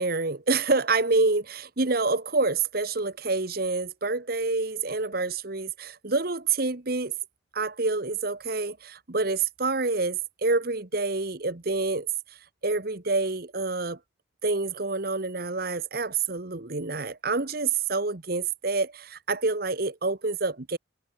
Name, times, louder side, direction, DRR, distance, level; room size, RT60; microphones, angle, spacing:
voice 1, 0.0-7.1 7.5-12.1 12.6-14.0 14.4-20.8, right 3 dB, 50° right, 1.3 m, -27 dB
head